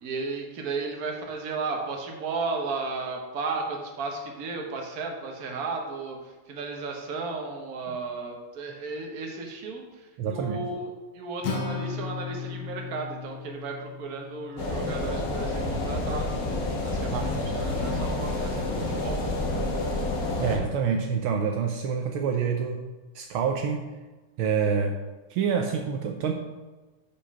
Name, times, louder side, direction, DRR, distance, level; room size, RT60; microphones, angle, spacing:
voice 1, 0.0-6.2 6.5-16.5 16.8-19.2, right 4 dB, 50° right, 1 dB, 1.3 m, -34 dB
voice 2, 10.2-10.7 17.1-17.6 20.4-22.8 23.1-23.9 24.4-25.0 25.3-26.3, right 6 dB, 75° right, 3 dB, 1.4 m, -27 dB
Acoustic guitar, 11.4-15.7, left 5 dB, 80° left, 1.7 m, -36 dB
sound 1, 14.6-20.6, left 2 dB, 50° left, 1.3 m, -29 dB
5.2 x 5.1 x 5.6 m, 1.2 s
omnidirectional pair, 2.4 m